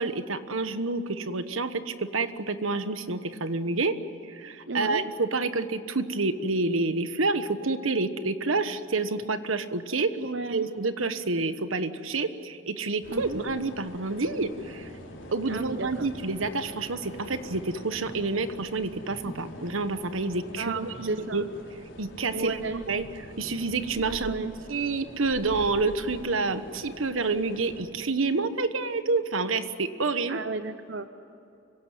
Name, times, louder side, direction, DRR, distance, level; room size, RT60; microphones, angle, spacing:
voice 1, 0.0-3.9 4.2-10.1 10.5-14.9 15.3-21.4 22.0-22.6 22.9-24.3 24.7-30.4, right 3 dB, 85° right, 11 dB, 1.2 m, -28 dB
voice 2, 4.7-5.0 10.2-10.7 13.1-13.4 15.5-16.1 20.6-21.5 22.3-22.8 24.1-24.5 30.3-31.1, right 3 dB, 60° right, 9 dB, 0.8 m, -33 dB
sound 1, 13.0-27.9, equal, 65° left, 4.0 m, -44 dB
25.0 x 17.0 x 9.1 m, 2.7 s
head